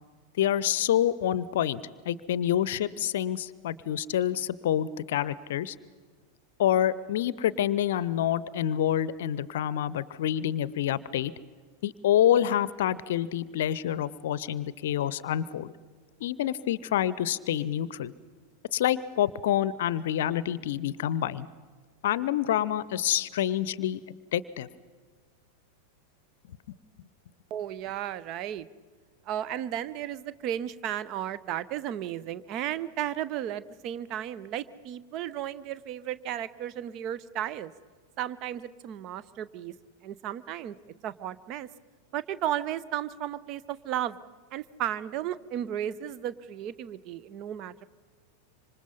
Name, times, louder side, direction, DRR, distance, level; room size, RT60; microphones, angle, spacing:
voice 1, 0.4-5.7 6.6-11.3 11.8-15.7 16.2-18.1 18.7-21.5 22.0-24.0 24.3-24.7, left 11 dB, 55° left, 20 dB, 0.7 m, -27 dB
voice 2, 27.5-28.7 29.3-37.7 38.2-39.7 40.0-40.8 41.0-41.7 42.1-44.2 44.5-47.9, right 11 dB, 40° right, 16 dB, 0.8 m, -34 dB
26.0 x 26.0 x 5.5 m, 1.5 s
figure-of-eight pair, 90°, 0 cm